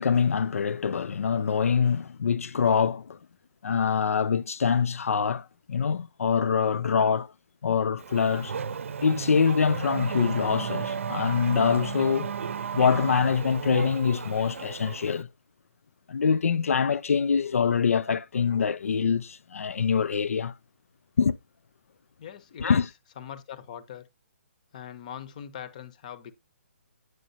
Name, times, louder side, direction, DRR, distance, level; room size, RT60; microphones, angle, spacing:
voice 1, 0.0-3.2 3.6-7.3 7.6-8.5 9.0-12.3 12.7-15.3 16.1-20.5 21.2-21.3 22.6-22.9, left 6 dB, 85° left, 0.4 m, -24 dB
Race car auto racing / Accelerating revving vroom, 8.0-15.2, right 7 dB, 65° right, 0.6 m, -34 dB
voice 2, 22.2-22.8 23.2-24.1 24.7-26.3, left 9 dB, 35° left, 0.8 m, -41 dB
9.2 x 6.1 x 2.7 m
hypercardioid pair, 165°, 7 cm